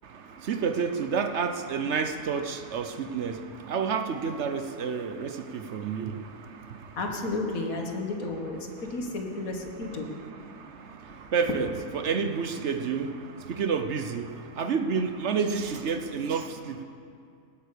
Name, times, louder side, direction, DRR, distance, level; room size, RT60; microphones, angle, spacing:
voice 1, 0.0-7.0 9.9-16.8, right 5 dB, 60° right, 8 dB, 1.0 m, -30 dB
voice 2, 7.0-10.1, left 2 dB, 90° left, 2 dB, 2.0 m, -32 dB
17.5 x 9.5 x 6.8 m, 2.4 s
omnidirectional pair, 1.4 m